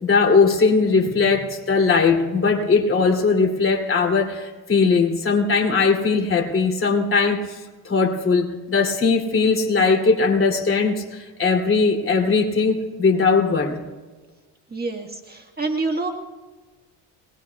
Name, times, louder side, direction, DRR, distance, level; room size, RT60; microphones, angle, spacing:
voice 1, 0.0-7.4 7.8-13.8, left 4 dB, 30° left, 1 dB, 3.0 m, -19 dB
voice 2, 14.7-16.1, right 3 dB, 20° right, 2 dB, 1.6 m, -27 dB
23.0 x 20.0 x 2.4 m, 1.3 s
supercardioid pair, 95°, 43 cm